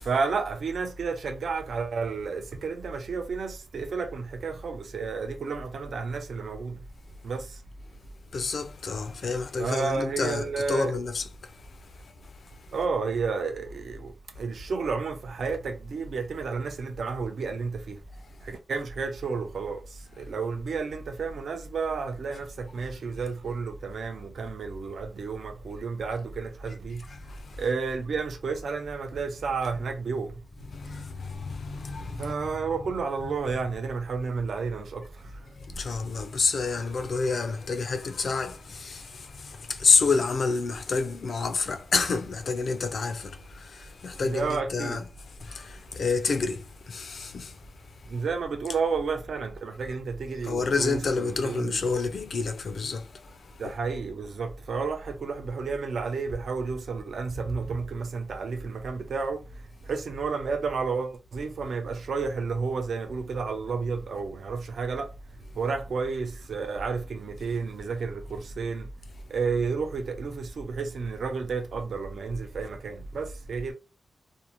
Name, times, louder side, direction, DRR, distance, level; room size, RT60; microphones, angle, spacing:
voice 1, 0.0-6.8 7.2-7.6 9.6-11.0 12.7-18.0 18.4-27.0 27.6-30.4 32.2-35.4 44.2-45.1 48.1-51.9 53.6-59.4 59.8-65.1 65.6-68.9 69.3-73.7, right 4 dB, 75° right, 0.5 m, -31 dB
voice 2, 8.3-11.3 27.1-27.4 30.7-32.3 35.7-45.0 45.4-47.5 50.4-53.1 53.6-53.7, left 4 dB, 65° left, 0.4 m, -28 dB
2.5 x 2.1 x 2.9 m
wide cardioid pair, 120°, 0 cm